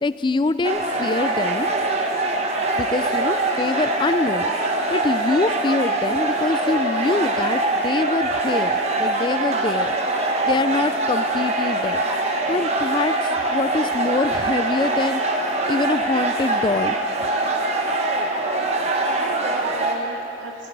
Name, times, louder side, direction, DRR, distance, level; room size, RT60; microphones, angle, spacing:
voice 1, 0.0-1.7 2.8-10.0 10.4-12.0 12.5-15.2 15.7-17.0, left 3 dB, 25° left, 14 dB, 0.3 m, -24 dB
sound 1, 0.6-20.0, right 2 dB, 35° right, 1.2 m, -23 dB
voice 2, 18.8-20.7, right 3 dB, 75° right, 1 dB, 1.0 m, -38 dB
17.5 x 17.5 x 4.6 m, 3.0 s
head